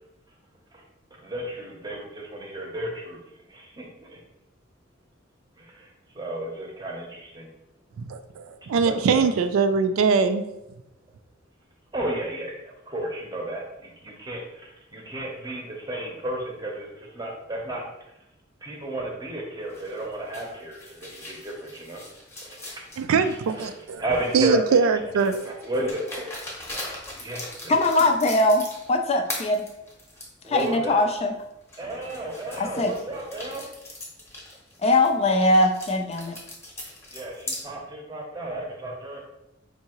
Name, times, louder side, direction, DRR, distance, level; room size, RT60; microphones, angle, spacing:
voice 1, 1.2-3.2 3.5-4.2 6.1-7.5 8.8-9.3 11.9-14.4 14.9-17.9 18.6-22.0 24.0-24.8 25.5-26.3 27.2-27.7 30.4-31.0 31.8-33.7 37.1-39.2, right 1 dB, 20° right, 0 dB, 0.7 m, -32 dB
voice 2, 8.0-10.4 23.0-24.0 24.3-25.5, right 5 dB, 90° right, 9 dB, 0.3 m, -22 dB
sound 1, 19.7-24.5 25.2-29.0 29.3-30.7 31.2-31.3 31.7-37.6, left 1 dB, 15° left, 0.8 m, -40 dB
voice 3, 27.7-29.7 30.5-31.3 32.6-32.9 34.8-36.4, left 2 dB, 30° left, 5 dB, 0.3 m, -21 dB
4.5 x 2.7 x 2.9 m, 0.89 s
head